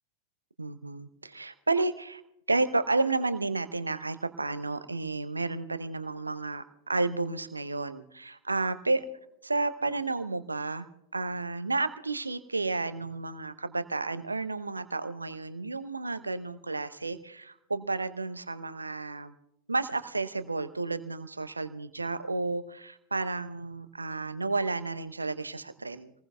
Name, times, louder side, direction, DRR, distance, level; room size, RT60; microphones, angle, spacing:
voice 1, 0.6-2.2 2.5-9.1 9.4-10.9 11.1-19.3 19.7-26.1, right 3 dB, 80° right, 12 dB, 0.7 m, -31 dB
28.0 x 19.5 x 2.3 m, 0.80 s
figure-of-eight pair, 90°, 0 cm